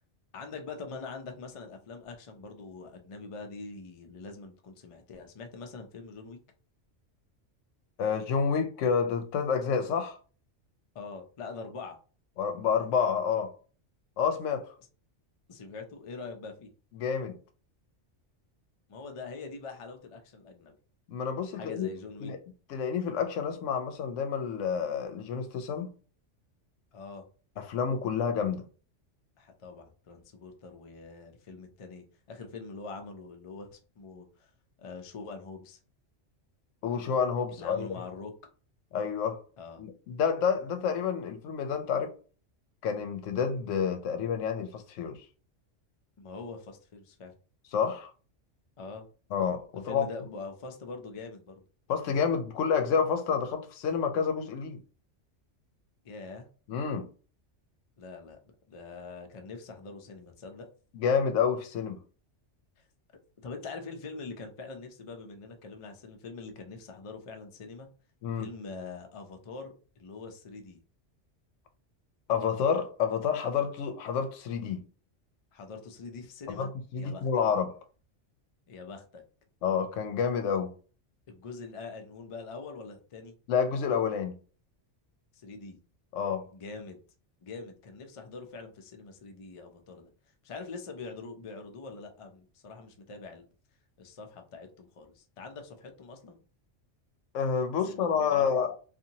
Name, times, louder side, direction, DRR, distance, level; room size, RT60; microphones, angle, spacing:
voice 1, 0.3-6.4 10.9-12.0 15.5-16.7 18.9-20.7 21.6-22.3 26.9-27.2 29.4-34.5 34.8-35.8 37.5-38.3 39.6-39.8 46.2-47.3 48.8-49.1 49.8-51.6 56.0-56.5 58.0-58.4 58.7-60.7 62.8-62.9 63.4-67.9 68.4-70.8 75.5-76.7 77.0-77.3 78.7-79.2 81.3-83.3 85.3-85.8 86.5-87.0 87.4-90.1 90.4-93.5 94.0-96.4 97.9-98.5, left 4 dB, 50° left, 0.4 m, -43 dB
voice 2, 8.0-10.2 12.4-13.6 14.2-14.7 17.0-17.4 21.1-21.9 22.2-22.4 22.7-25.9 27.6-28.6 36.8-37.9 38.9-39.4 39.8-42.1 42.8-45.2 47.7-48.1 49.3-50.0 51.9-54.8 56.7-57.1 60.9-62.0 68.2-68.5 72.3-74.8 76.5-77.8 79.6-80.7 83.5-84.3 86.1-86.5 97.3-98.7, left 6 dB, 85° left, 0.9 m, -29 dB
2.7 x 2.5 x 2.8 m
omnidirectional pair, 1.2 m